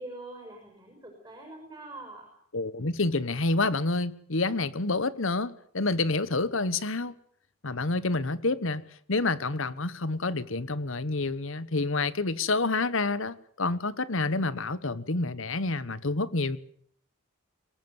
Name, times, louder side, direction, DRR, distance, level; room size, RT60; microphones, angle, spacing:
voice 1, 0.0-2.3, right 2 dB, 15° right, 6.3 m, -44 dB
voice 2, 2.5-7.1 7.6-8.8 9.1-16.6, left 3 dB, 65° left, 1.2 m, -28 dB
23.5 x 19.5 x 8.1 m
head